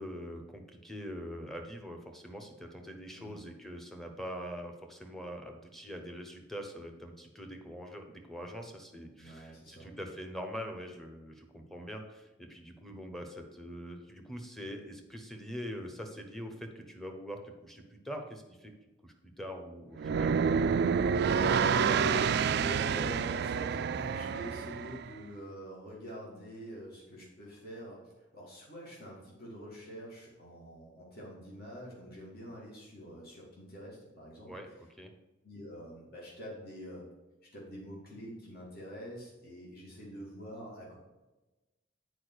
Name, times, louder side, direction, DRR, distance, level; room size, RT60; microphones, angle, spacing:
voice 1, 0.0-18.7 19.0-20.4 34.5-35.1, equal, ahead, 3 dB, 1.0 m, -43 dB
voice 2, 9.2-9.9 21.2-28.0 28.3-34.5 35.4-37.1 37.5-40.9, equal, 50° left, -4 dB, 2.5 m, -44 dB
sound 1, 20.0-25.1, right 6 dB, 55° right, 0.3 m, -28 dB
8.6 x 4.9 x 6.4 m, 1.1 s
head